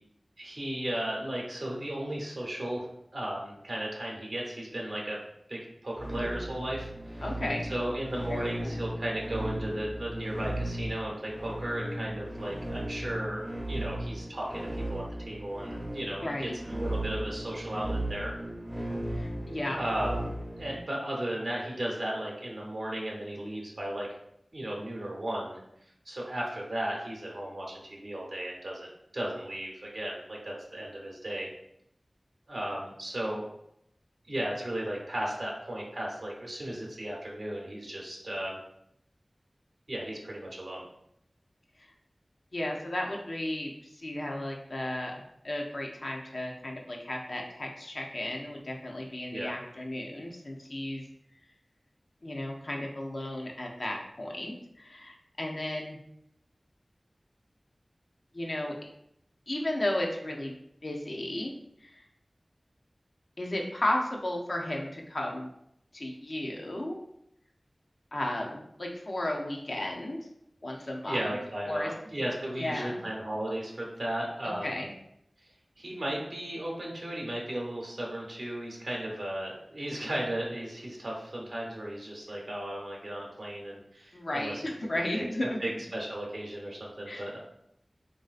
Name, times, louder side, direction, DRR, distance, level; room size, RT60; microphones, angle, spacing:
voice 1, 0.4-2.9 3.1-5.2 5.5-7.2 7.7-18.3 19.7-20.3 20.6-24.1 24.5-25.6 26.1-31.5 32.5-33.4 34.3-38.6 39.9-40.8 49.3-49.5 70.7-74.9 75.8-84.6 85.1-87.4, right 1 dB, 80° right, -2 dB, 0.6 m, -35 dB
sound 1, 5.9-20.8, right 1 dB, 15° right, 0.5 m, -36 dB
voice 2, 7.2-7.6 8.3-8.8 16.2-16.5 19.1-19.8 41.8-41.9 42.5-51.0 52.2-56.0 58.3-58.7 59.5-60.6 60.8-61.5 61.8-62.0 63.4-65.5 65.9-67.0 68.1-70.2 70.6-71.4 71.7-71.9 72.6-73.0 74.6-74.9 84.1-85.6 87.1-87.3, left 1 dB, 75° left, 0 dB, 0.5 m, -34 dB
3.2 x 2.6 x 2.4 m, 0.76 s
wide cardioid pair, 45°, 0 cm